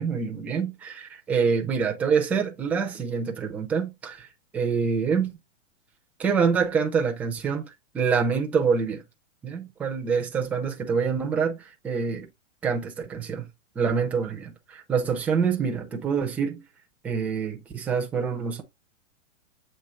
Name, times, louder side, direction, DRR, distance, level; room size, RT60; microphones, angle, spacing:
voice 1, 0.0-4.3 4.5-5.3 6.2-7.6 7.9-9.0 9.4-11.6 11.8-12.3 12.6-13.5 13.8-16.6 17.0-18.6, right 6 dB, 5° right, 0.4 m, -26 dB
7.6 x 3.1 x 4.2 m
hypercardioid pair, 145°, 37 cm